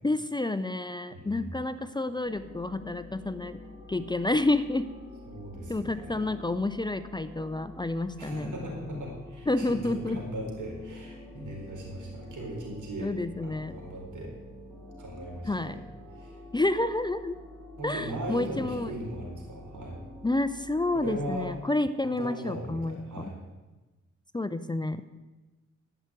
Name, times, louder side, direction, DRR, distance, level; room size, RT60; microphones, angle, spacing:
voice 1, 0.0-3.6 3.9-4.9 5.7-8.5 9.5-10.2 13.0-13.8 15.5-15.8 16.5-17.4 17.8-18.9 20.2-23.2 24.3-25.1, left 2 dB, 15° left, 12 dB, 0.5 m, -29 dB
voice 2, 1.1-1.7 5.3-6.2 8.2-13.1 13.4-14.3 15.0-15.8 16.1-16.4 17.8-20.0 20.9-21.5 22.0-23.4, right 1 dB, 80° right, -1 dB, 4.3 m, -38 dB
sound 1, 2.2-21.6, left 2 dB, 5° right, 5.0 m, -47 dB
13.0 x 5.9 x 9.0 m, 1.2 s
cardioid pair, 85°, 30 cm